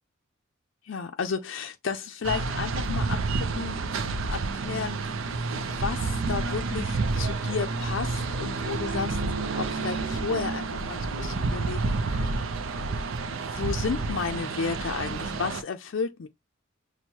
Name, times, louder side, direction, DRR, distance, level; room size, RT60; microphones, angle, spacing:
voice 1, 0.8-12.4 13.3-16.3, left 5 dB, 65° left, 0.4 m, -33 dB
sound 1, 2.2-15.6, right 3 dB, 85° right, 0.5 m, -29 dB
6.1 x 2.1 x 2.8 m
head